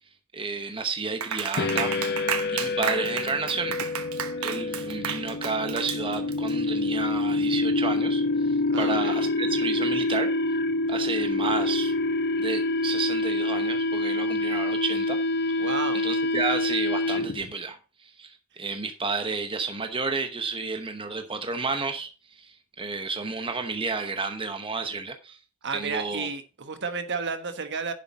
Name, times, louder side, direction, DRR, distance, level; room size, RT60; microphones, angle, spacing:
voice 1, 0.3-3.7 4.4-10.3 10.9-11.9 12.4-15.2 15.4-15.7 16.0-25.4 25.7-26.3, right 4 dB, 25° right, 0.9 m, -31 dB
Clapping, 1.2-6.5, right 8 dB, 75° right, 1.1 m, -32 dB
sound 1, 1.6-17.5, left 2 dB, 50° left, 0.6 m, -27 dB
voice 2, 8.7-9.1 15.6-16.0 25.6-27.9, right 5 dB, 55° right, 1.3 m, -32 dB
10.5 x 7.7 x 4.1 m
head